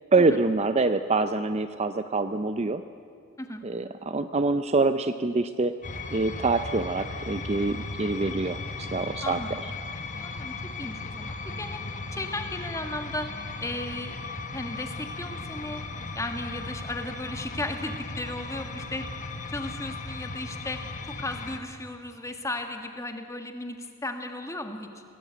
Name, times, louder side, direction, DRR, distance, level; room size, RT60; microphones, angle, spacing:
voice 1, 0.1-2.8 3.6-5.7 6.1-9.4, right 3 dB, 30° right, 10 dB, 0.5 m, -25 dB
sound 1, 5.8-21.6, left 3 dB, 35° left, 1.2 m, -37 dB
voice 2, 9.2-9.5 10.2-11.8 12.1-13.3 13.6-14.2 14.5-15.8 16.1-19.1 19.5-20.8 21.2-25.0, left 1 dB, 15° left, 5 dB, 1.7 m, -35 dB
25.0 x 18.5 x 8.2 m, 2.2 s
head